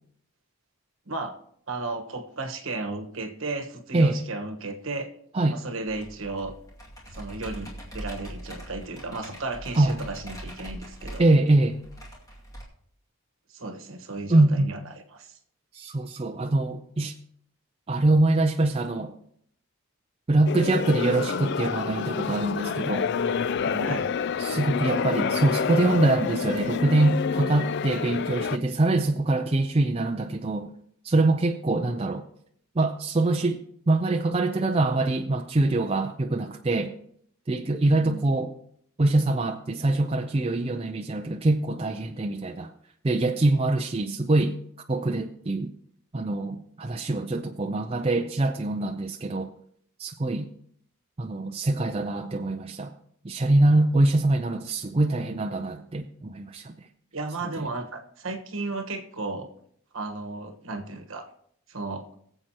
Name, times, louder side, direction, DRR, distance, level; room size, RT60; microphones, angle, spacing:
voice 1, 1.7-5.1 5.5-6.5 7.1-11.2 13.5-15.4 23.8-24.1 37.8-38.2 57.1-59.5 59.9-61.3 61.7-62.1, right 3 dB, 65° right, 6 dB, 1.3 m, -34 dB
voice 2, 3.9-4.2 5.3-5.6 9.8-10.0 11.2-11.8 14.3-14.7 15.7-17.1 17.9-19.1 20.3-23.1 23.7-24.0 24.4-30.7 31.0-32.2 32.8-33.6 33.9-36.9 37.5-38.5 39.0-42.7 43.0-44.6 44.9-45.7 46.1-49.5 50.0-50.5 51.2-52.9 53.2-56.7 57.6-57.7, right 2 dB, 25° right, 4 dB, 0.5 m, -24 dB
Computer keyboard, 5.9-12.6, right 1 dB, 15° left, 2.3 m, -42 dB
sound 1, 20.5-28.6, left 6 dB, 50° left, 0.4 m, -28 dB
23.0 x 7.7 x 2.9 m, 0.68 s
head